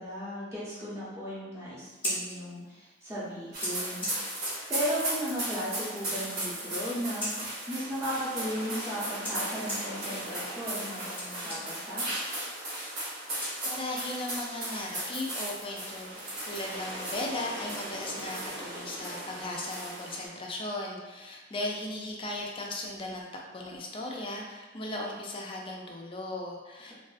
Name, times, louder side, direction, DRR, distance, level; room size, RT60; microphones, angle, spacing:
voice 1, 0.0-4.4 4.7-7.3 7.7-12.1, equal, 15° right, -8 dB, 0.7 m, -36 dB
Scissors, 1.8-14.2, equal, 10° left, 0.9 m, -42 dB
sound 1, 3.5-20.3, right 1 dB, 55° right, 0.9 m, -36 dB
voice 2, 13.6-16.2 16.5-26.9, left 1 dB, 30° left, -1 dB, 0.4 m, -37 dB
2.4 x 2.3 x 2.4 m, 1.2 s
head